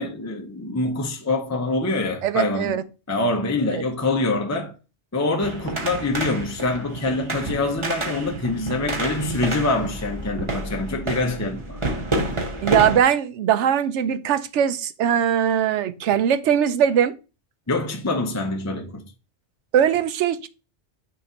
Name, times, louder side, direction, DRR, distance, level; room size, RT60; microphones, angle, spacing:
voice 1, 0.0-4.7 5.1-11.8 17.7-19.0, left 2 dB, 15° left, 0.7 m, -25 dB
voice 2, 2.2-2.8 3.7-3.8 12.6-17.1 19.7-20.5, right 9 dB, 90° right, 0.9 m, -20 dB
sound 1, 5.4-13.0, right 2 dB, 25° right, 1.0 m, -29 dB
6.5 x 2.9 x 5.1 m
omnidirectional pair, 1.2 m